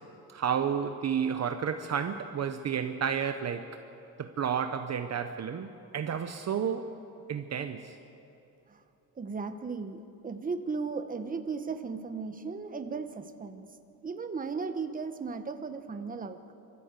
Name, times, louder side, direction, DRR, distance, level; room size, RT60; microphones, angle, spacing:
voice 1, 0.3-3.8 4.2-6.9 7.3-7.9, right 7 dB, 40° right, 7 dB, 0.8 m, -31 dB
voice 2, 9.2-13.7 14.0-16.5, right 4 dB, 20° right, 8 dB, 1.1 m, -36 dB
27.0 x 14.0 x 8.2 m, 2.9 s
cardioid pair, 140°, 39 cm